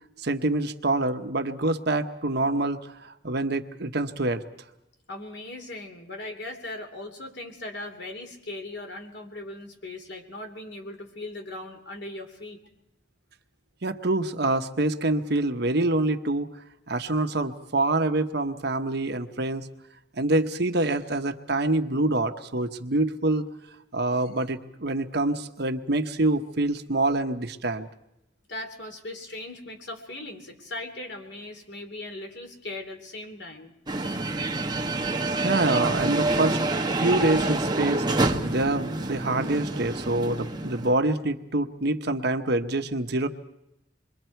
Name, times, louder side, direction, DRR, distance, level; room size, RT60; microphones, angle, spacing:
voice 1, 0.2-4.4 13.8-16.5 16.9-19.7 20.2-23.4 23.9-27.9 35.4-36.6 37.0-38.1 38.4-43.3, right 2 dB, 60° right, 7 dB, 1.1 m, -26 dB
voice 2, 5.1-12.6 28.5-33.7, left 2 dB, 65° left, 4 dB, 3.2 m, -39 dB
sound 1, 33.9-40.9, right 2 dB, 25° right, 1.2 m, -27 dB
27.5 x 23.0 x 4.6 m, 0.84 s
head